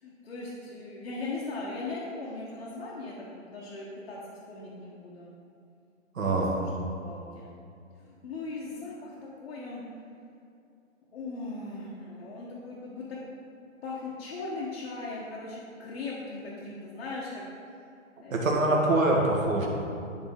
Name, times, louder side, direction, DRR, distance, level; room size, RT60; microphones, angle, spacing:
voice 1, 0.0-4.2 4.5-5.3 6.2-6.3 7.0-7.5 8.0-9.8 11.1-13.2 13.8-17.6 18.2-18.8, left 3 dB, 55° left, -7 dB, 1.3 m, -39 dB
voice 2, 6.1-6.5 18.3-19.7, right 2 dB, 80° right, -1 dB, 1.7 m, -24 dB
11.0 x 4.0 x 3.7 m, 2.5 s
hypercardioid pair, 155°, 39 cm